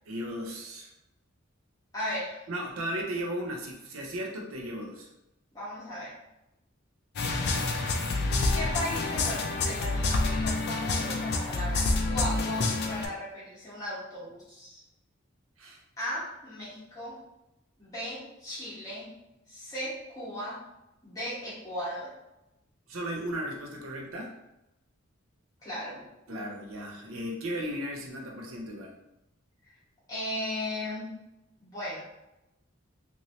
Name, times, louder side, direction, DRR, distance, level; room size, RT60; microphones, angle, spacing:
voice 1, 0.0-0.9 2.5-5.1 15.6-15.8 22.9-24.4 26.3-28.9, equal, 85° right, 0 dB, 0.6 m, -36 dB
voice 2, 1.9-2.4 5.5-6.1 8.5-14.8 16.0-17.2 17.8-19.1 19.5-20.6 21.0-22.1 25.6-26.3 30.1-31.1 31.6-32.0, equal, 15° left, -10 dB, 1.4 m, -36 dB
sound 1, 7.2-13.1, left 3 dB, 50° left, 0.4 m, -28 dB
3.0 x 2.7 x 2.7 m, 0.92 s
head